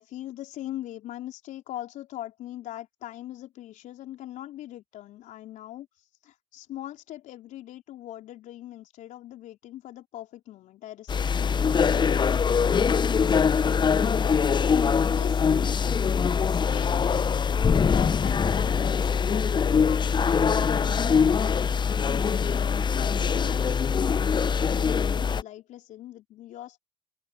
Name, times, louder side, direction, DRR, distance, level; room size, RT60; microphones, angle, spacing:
voice 1, 0.0-14.4 14.8-16.1 16.5-21.6 22.4-26.8, left 13 dB, 60° left, 4.1 m, -42 dB
sound 1, 11.1-25.4, left 6 dB, 30° left, 0.7 m, -23 dB
open air
hypercardioid pair, 50°, 14 cm